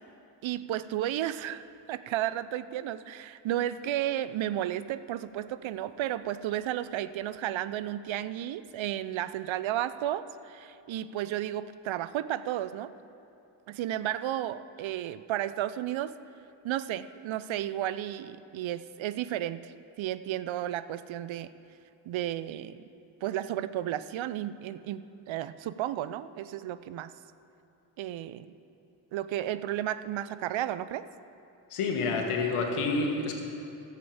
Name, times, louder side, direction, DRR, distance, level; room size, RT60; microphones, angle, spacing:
voice 1, 0.4-12.9 13.7-16.1 16.6-19.7 20.0-21.5 22.1-22.8 23.2-25.0 25.3-27.1 28.0-28.5 29.1-31.0, right 12 dB, 65° right, 14 dB, 0.6 m, -33 dB
voice 2, 31.7-33.3, left 3 dB, 85° left, 2 dB, 1.5 m, -28 dB
12.0 x 7.6 x 7.2 m, 2.7 s
supercardioid pair, 45°, 50 cm